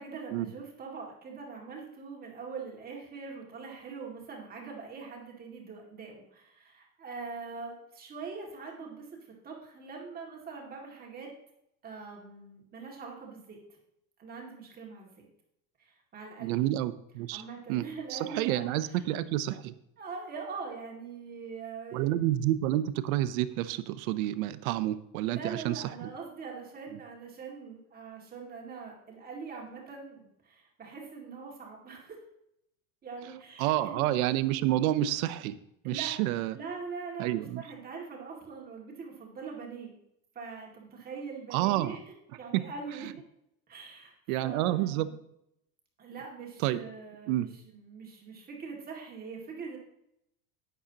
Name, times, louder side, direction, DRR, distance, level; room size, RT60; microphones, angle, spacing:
voice 1, 0.0-11.3 11.8-13.6 14.2-15.1 15.8-16.7 17.3-19.1 20.0-22.3 25.2-32.2 33.0-34.0 35.8-36.2 36.5-40.0 40.3-42.0 42.4-43.1 43.7-44.1 44.4-45.2 46.0-49.8, right 5 dB, 20° right, -1 dB, 2.2 m, -43 dB
voice 2, 16.4-17.4 17.7-19.7 21.9-26.1 33.6-35.6 35.8-36.6 37.2-37.6 41.5-42.0 42.5-42.6 44.3-45.1 46.6-46.8 47.3-47.5, right 14 dB, 80° right, 14 dB, 0.8 m, -29 dB
11.0 x 9.3 x 2.9 m, 0.79 s
cardioid pair, 165°, 42 cm